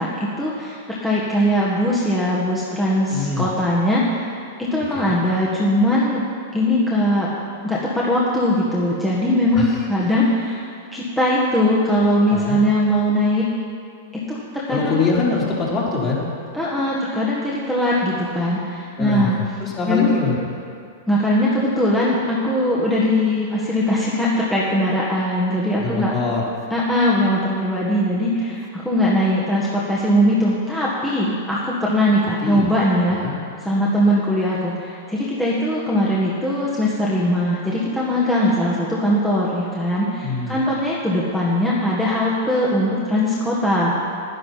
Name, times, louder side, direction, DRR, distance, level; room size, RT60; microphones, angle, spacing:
voice 1, 0.0-4.3 4.6-6.2 6.5-7.3 7.6-10.7 10.9-13.5 14.1-15.0 16.5-19.3 19.9-20.1 21.1-26.1 26.7-33.2 33.6-43.9, equal, 5° left, -7 dB, 1.7 m, -20 dB
voice 2, 3.1-3.5 4.9-5.2 9.5-9.9 12.3-12.6 14.7-16.2 19.0-20.4 25.8-26.4 32.2-32.7 33.1-33.4 40.2-40.6, left 4 dB, 30° left, -5 dB, 3.7 m, -24 dB
10.5 x 10.5 x 5.8 m, 2.3 s
hypercardioid pair, 110°, 0 cm